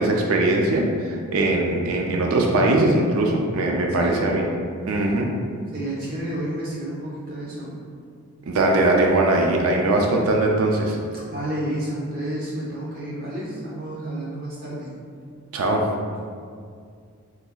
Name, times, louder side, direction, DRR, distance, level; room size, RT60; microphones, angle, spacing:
voice 1, 0.0-4.4 4.9-5.3 8.5-11.0 15.5-15.9, right 2 dB, 80° right, 0 dB, 0.4 m, -20 dB
voice 2, 5.7-7.8 11.1-14.9, right 1 dB, 40° right, -6 dB, 0.9 m, -30 dB
3.8 x 2.9 x 2.3 m, 2.2 s
head